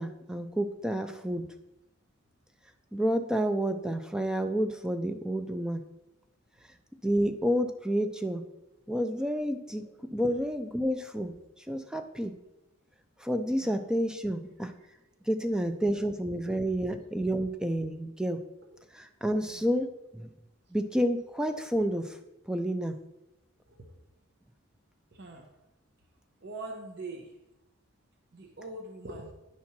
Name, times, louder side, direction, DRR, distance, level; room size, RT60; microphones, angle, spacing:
voice 1, 0.0-1.4 2.9-5.8 7.0-8.4 8.9-9.8 10.1-12.3 13.2-14.7 15.3-18.4 18.9-20.3 20.7-22.2 22.5-22.9, equal, 5° right, 7 dB, 0.4 m, -30 dB
voice 2, 25.1-25.5 26.4-27.3 28.3-29.3, right 2 dB, 50° right, 1 dB, 0.9 m, -42 dB
9.5 x 4.3 x 5.9 m, 0.93 s
head